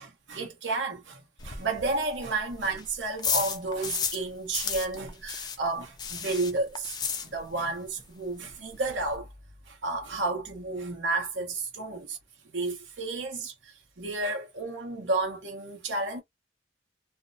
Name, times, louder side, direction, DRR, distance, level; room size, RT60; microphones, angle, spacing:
voice 1, 0.0-9.3 9.7-12.2 12.5-16.2, right 3 dB, 90° right, 1.0 m, -32 dB
sound 1, 1.4-4.3 4.5-7.7 8.0-8.1 8.4-8.5 8.7-9.2, left 6 dB, 20° left, 0.3 m, -33 dB
2.6 x 2.1 x 2.6 m
head